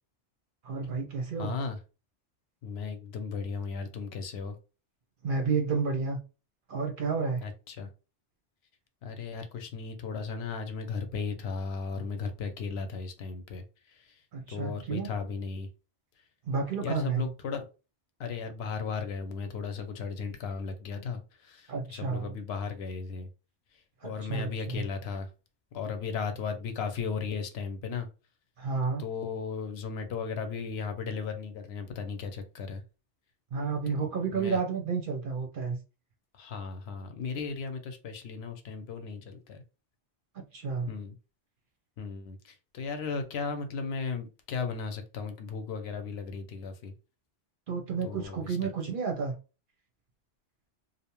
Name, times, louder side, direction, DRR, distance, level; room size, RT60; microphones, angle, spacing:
voice 1, 0.6-1.5 5.2-6.2 6.7-7.4 14.3-15.1 16.4-17.3 21.7-22.3 24.0-24.8 28.6-29.0 33.5-35.8 40.3-40.9 47.7-49.3, right 5 dB, 60° right, 4 dB, 0.7 m, -31 dB
voice 2, 1.4-1.8 2.6-4.5 7.4-7.9 9.0-13.6 14.5-15.7 16.8-17.7 18.2-23.3 24.0-25.3 25.7-28.1 29.0-32.8 34.0-34.6 36.4-39.6 40.9-41.1 42.0-46.9 48.0-48.5, left 5 dB, 70° left, 7 dB, 0.8 m, -36 dB
2.7 x 2.0 x 2.9 m, 0.31 s
omnidirectional pair, 1.2 m